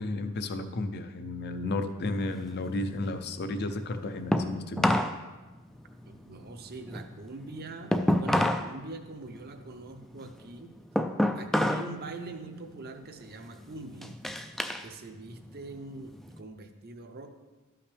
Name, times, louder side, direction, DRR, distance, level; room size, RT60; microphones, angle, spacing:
voice 1, 0.0-4.9, left 2 dB, 50° left, 9 dB, 0.6 m, -33 dB
sound 1, 2.1-5.2 5.5-8.7 9.1-11.9 12.3-12.7 13.2-14.9 15.2-16.4, left 1 dB, ahead, 0.3 m, -29 dB
voice 2, 6.0-10.7 11.3-14.1 14.8-17.3, right 3 dB, 50° right, 6 dB, 0.7 m, -43 dB
12.0 x 5.7 x 3.4 m, 1.2 s
head